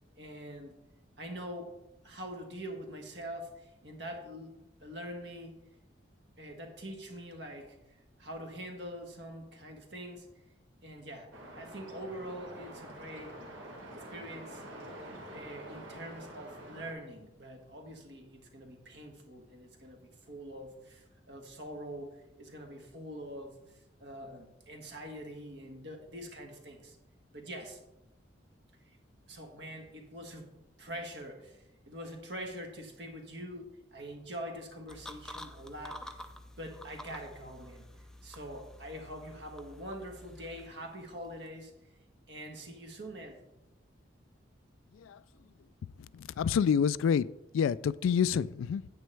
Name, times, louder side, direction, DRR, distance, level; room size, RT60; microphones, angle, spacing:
voice 1, 0.2-0.8 1.2-1.7 2.0-4.5 4.8-5.6 6.4-7.8 8.2-10.3 10.8-13.4 13.9-14.6 15.3-23.6 24.0-27.0 27.3-27.8 28.9-29.0 29.3-36.3 36.6-37.9 38.2-41.7 42.3-43.4, equal, 60° right, 1.4 m, -44 dB
sound 1, 11.3-16.9, right 1 dB, 75° right, 1.7 m, -47 dB
sound 2, 34.9-41.5, left 1 dB, 5° left, 0.4 m, -49 dB
voice 2, 46.0-48.9, left 7 dB, 85° left, 0.3 m, -28 dB
9.3 x 8.7 x 3.3 m
head